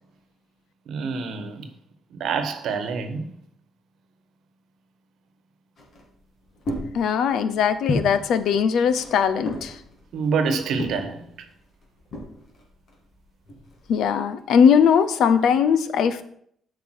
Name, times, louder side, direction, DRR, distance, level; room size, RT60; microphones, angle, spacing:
voice 1, 0.9-1.7 2.1-3.3 10.1-11.3, right 5 dB, 75° right, 1.1 m, -26 dB
sound 1, 5.8-14.1, left 1 dB, 55° left, 2.7 m, -35 dB
voice 2, 6.9-9.8 13.9-16.2, left 7 dB, 75° left, 0.7 m, -20 dB
8.6 x 5.3 x 6.2 m
cardioid pair, 90°, 0 cm